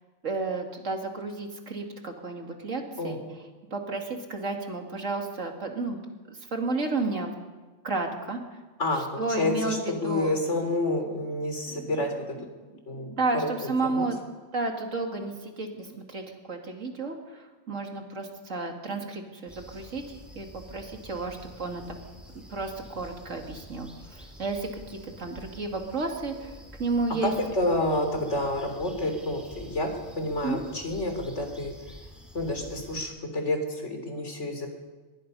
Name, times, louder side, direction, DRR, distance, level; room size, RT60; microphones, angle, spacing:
voice 1, 0.2-3.2 3.7-6.0 6.5-7.3 7.8-8.4 9.2-10.3 11.7-11.8 13.1-14.2 14.5-15.7 16.1-16.2 16.5-21.8 22.3-26.5 26.8-27.3 30.4-30.6, right 3 dB, 70° right, 2 dB, 2.8 m, -32 dB
voice 2, 8.8-12.2 12.9-13.1 13.6-14.1 27.2-31.7 32.3-34.7, left 1 dB, 60° left, 4 dB, 3.8 m, -29 dB
sound 1, 19.5-33.0, equal, ahead, 5.1 m, -48 dB
24.5 x 21.5 x 5.5 m, 1.3 s
omnidirectional pair, 1.4 m